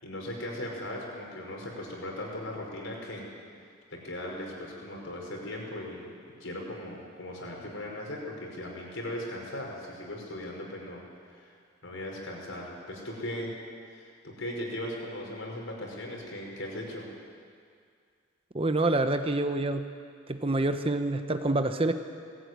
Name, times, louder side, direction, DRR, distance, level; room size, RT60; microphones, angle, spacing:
voice 1, 0.0-3.2 3.9-6.1 6.4-11.5 11.8-13.5 13.9-17.1, left 1 dB, 70° left, -1 dB, 5.1 m, -38 dB
voice 2, 18.5-19.9 20.3-21.9, right 2 dB, 25° right, 8 dB, 0.8 m, -27 dB
19.0 x 15.5 x 9.5 m, 2.2 s
head